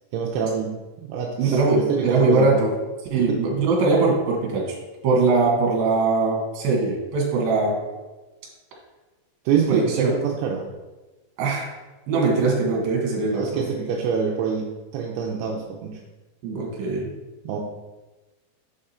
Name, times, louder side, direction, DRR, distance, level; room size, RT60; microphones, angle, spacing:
voice 1, 0.1-2.6 3.2-3.3 9.5-10.7 12.4-12.5 13.2-16.0 17.4-17.6, right 6 dB, 80° right, 0 dB, 2.4 m, -26 dB
voice 2, 1.4-2.7 3.1-4.6 5.0-7.8 9.7-10.1 11.4-11.7 12.1-13.4 16.4-17.1, right 3 dB, 60° right, -2 dB, 3.0 m, -21 dB
7.3 x 5.0 x 4.3 m, 1.2 s
omnidirectional pair, 5.1 m